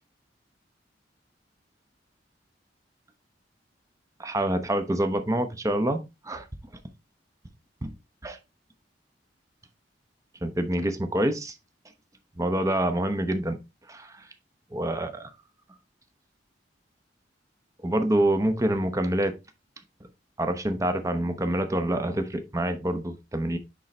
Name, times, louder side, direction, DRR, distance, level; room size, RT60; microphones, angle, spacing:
voice 1, 4.2-6.4 7.8-7.9 8.2-8.4 10.4-11.5 12.4-13.6 13.9-14.2 14.7-15.3 17.8-19.3 20.4-23.6, right 1 dB, 20° right, 0.9 m, -26 dB
10.0 x 4.0 x 3.2 m
head